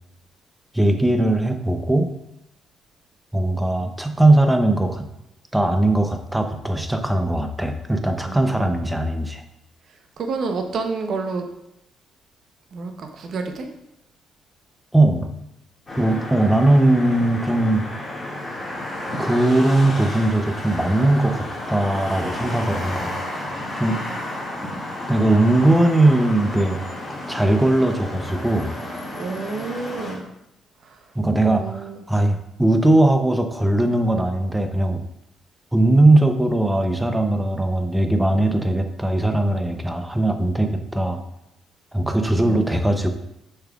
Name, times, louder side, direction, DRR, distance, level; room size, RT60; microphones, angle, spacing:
voice 1, 0.7-2.1 3.3-5.1 5.5-9.4 14.9-15.3 16.0-17.8 19.2-23.1 23.7-24.0 25.1-26.8 27.3-28.7 31.1-35.0 35.7-41.2 41.9-43.1, right 1 dB, 5° right, 6 dB, 0.6 m, -19 dB
voice 2, 8.3-8.7 10.2-11.4 12.7-13.7 29.1-30.3 30.8-31.0 31.4-32.0 42.4-42.6, right 4 dB, 60° right, 5 dB, 0.8 m, -29 dB
sound 1, 15.9-30.1, left 1 dB, 25° left, 2.1 m, -32 dB
6.9 x 5.6 x 2.4 m, 0.84 s
cardioid pair, 90°, 0 cm